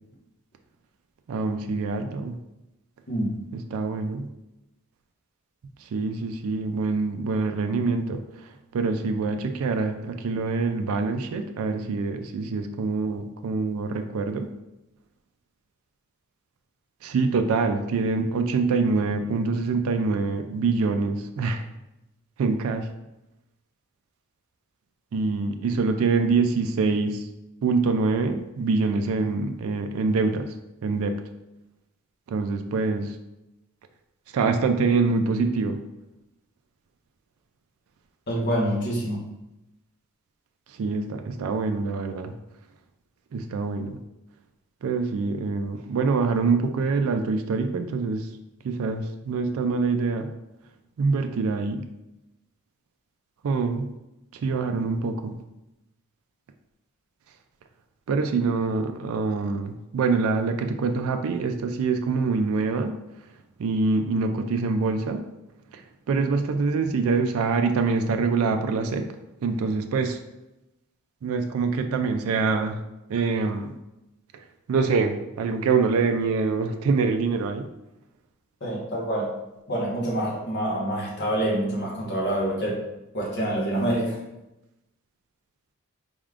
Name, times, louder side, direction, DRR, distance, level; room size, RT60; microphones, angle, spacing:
voice 1, 1.3-2.4 3.5-4.3 5.9-14.5 17.0-21.6 22.4-22.9 25.1-27.3 27.6-30.5 30.8-31.2 32.3-33.1 34.3-35.8 40.8-42.3 43.3-44.0 44.8-48.3 48.6-50.3 51.0-51.8 53.4-53.9 54.3-55.4 58.1-62.9 63.6-65.2 65.7-65.8 66.1-69.1 69.4-70.2 71.2-72.8 73.1-73.7 74.7-77.7, right 4 dB, 75° right, 6 dB, 0.3 m, -25 dB
voice 2, 38.3-39.2 78.6-79.3 79.7-82.8 83.1-84.2, right 1 dB, 50° left, -4 dB, 1.2 m, -26 dB
4.2 x 3.5 x 2.4 m, 0.95 s
head